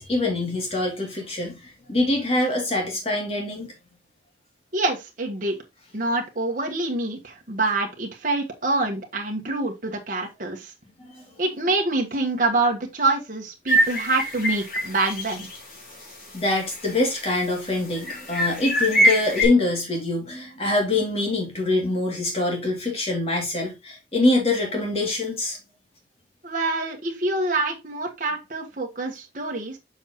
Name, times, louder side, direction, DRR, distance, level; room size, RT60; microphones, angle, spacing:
voice 1, 0.0-3.7 11.1-11.2 16.3-25.6, left 2 dB, 35° left, 2.6 m, -24 dB
voice 2, 4.7-5.6 5.9-10.7 11.4-15.5 26.4-29.8, right 2 dB, 45° right, 1.4 m, -26 dB
sound 1, 13.7-15.6 15.9-16.0 16.5-17.4 18.0-19.5, equal, 50° left, 3.5 m, -23 dB
7.2 x 5.8 x 3.0 m
head